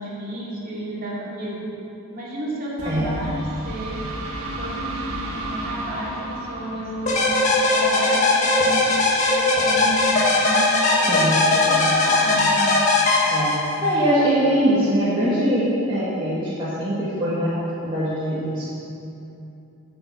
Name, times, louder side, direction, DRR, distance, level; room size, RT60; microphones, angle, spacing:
voice 1, 0.0-1.7 2.1-4.0 4.6-8.8 9.3-10.7 11.0-12.7, right 1 dB, 40° right, -6 dB, 2.8 m, -31 dB
sound 1, 2.8-8.4, right 1 dB, 80° right, 1.5 m, -33 dB
sound 2, 7.1-13.9, left 2 dB, 35° left, 1.5 m, -19 dB
voice 2, 11.1-11.4 11.7-12.0 13.3-13.6 13.8-18.6, equal, 20° right, -11 dB, 1.9 m, -22 dB
10.5 x 6.2 x 8.5 m, 2.9 s
head